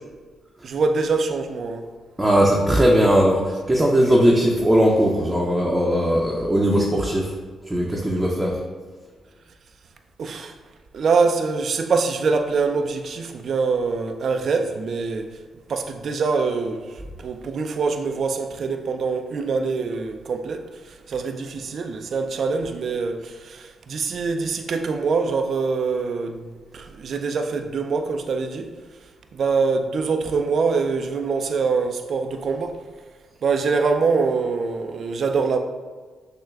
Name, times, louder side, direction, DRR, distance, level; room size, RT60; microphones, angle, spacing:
voice 1, 0.6-1.9 10.2-10.5 10.9-15.3 15.7-26.5 26.7-28.7 29.3-32.8 33.4-35.6, right 4 dB, 60° right, 0.3 m, -24 dB
voice 2, 2.2-7.3 7.7-8.6, equal, 15° right, 0.6 m, -19 dB
6.4 x 2.2 x 2.3 m
hypercardioid pair, 45°, 0 cm